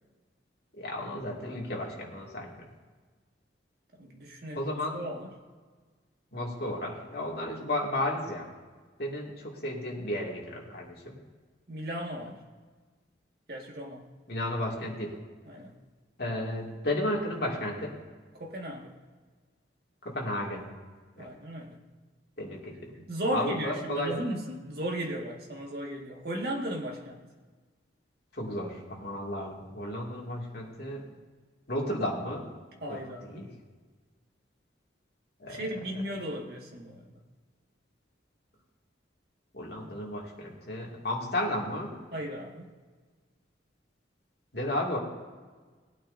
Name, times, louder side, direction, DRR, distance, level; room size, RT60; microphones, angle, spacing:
voice 1, 0.7-2.7 4.5-5.0 6.3-8.5 9.0-11.2 14.3-15.1 16.2-17.9 20.0-20.7 21.2-21.3 22.4-22.9 23.3-24.2 28.3-31.1 31.7-32.4 32.9-33.0 33.3-33.5 35.4-35.6 39.5-41.9 44.5-45.0, left 1 dB, 55° left, -2 dB, 2.5 m, -33 dB
voice 2, 4.0-5.3 11.7-12.4 13.5-14.0 15.5-15.7 18.3-18.9 21.2-21.8 22.9-27.2 32.8-33.5 35.5-37.0 42.1-42.7, equal, 55° right, 0 dB, 1.9 m, -36 dB
19.5 x 9.0 x 2.7 m, 1.4 s
head